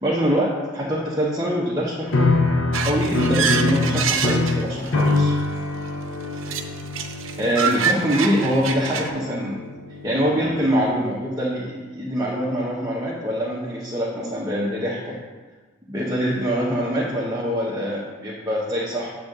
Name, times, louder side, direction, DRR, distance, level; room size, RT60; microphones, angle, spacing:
voice 1, 0.0-2.3 2.8-5.3 7.4-9.6 10.0-15.2 15.9-19.1, equal, 20° right, -6 dB, 1.0 m, -24 dB
sound 1, 2.1-10.4, left 2 dB, 80° left, 0.9 m, -24 dB
sound 2, 2.7-5.2 6.4-9.1, right 6 dB, 80° right, 0.7 m, -26 dB
8.3 x 3.6 x 6.6 m, 1.3 s
head